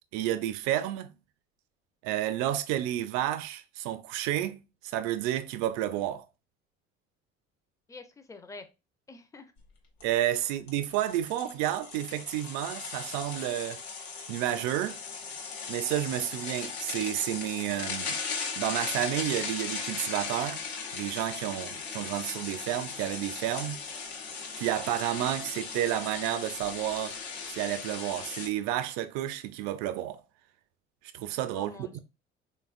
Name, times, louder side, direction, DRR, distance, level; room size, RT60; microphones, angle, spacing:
voice 1, 0.1-1.1 2.0-6.2 10.0-13.8 14.3-15.0 15.7-18.2 18.6-20.6 20.9-23.8 24.6-27.2 27.5-30.2 31.1-32.0, right 12 dB, 65° right, 0.4 m, -31 dB
voice 2, 7.9-8.7 9.1-9.5 31.5-32.0, left 3 dB, 10° left, 0.4 m, -46 dB
sound 1, 9.6-9.7 10.0-10.1 10.7-28.5, left 5 dB, 85° left, 0.7 m, -38 dB
3.4 x 2.1 x 2.4 m
hypercardioid pair, 55°, 32 cm